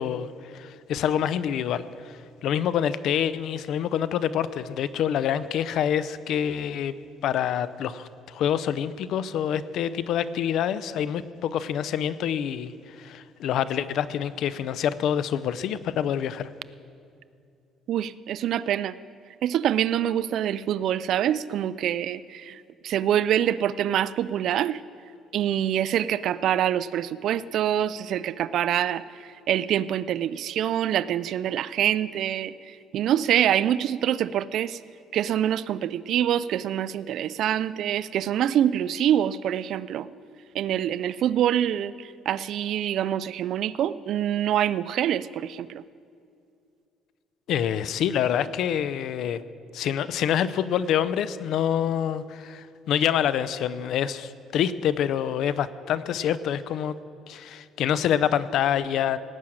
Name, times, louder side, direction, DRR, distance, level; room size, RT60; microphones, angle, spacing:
voice 1, 0.0-6.9 7.2-16.5 47.5-49.4 49.7-57.0 57.3-59.2, left 9 dB, 70° left, 15 dB, 0.6 m, -26 dB
voice 2, 17.9-18.9 19.4-24.8 25.3-32.5 32.9-34.8 35.1-40.1 40.5-45.8, right 10 dB, 65° right, 17 dB, 0.4 m, -25 dB
18.0 x 6.3 x 8.7 m, 2.5 s
cardioid pair, 110°, 0 cm